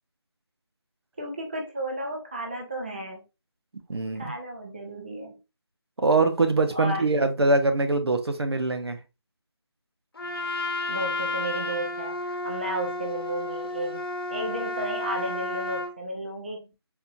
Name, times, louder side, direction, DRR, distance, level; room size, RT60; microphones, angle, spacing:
voice 1, 1.2-3.2 4.2-5.4 6.7-7.0 10.2-14.0 14.3-16.9, right 1 dB, 25° right, 0 dB, 0.5 m, -33 dB
voice 2, 3.9-4.3 6.0-9.0, right 3 dB, 70° right, 7 dB, 0.7 m, -23 dB
Trumpet, 10.2-15.9, left 2 dB, 55° left, 0.9 m, -32 dB
4.2 x 2.7 x 2.5 m, 0.27 s
figure-of-eight pair, 170°, 14 cm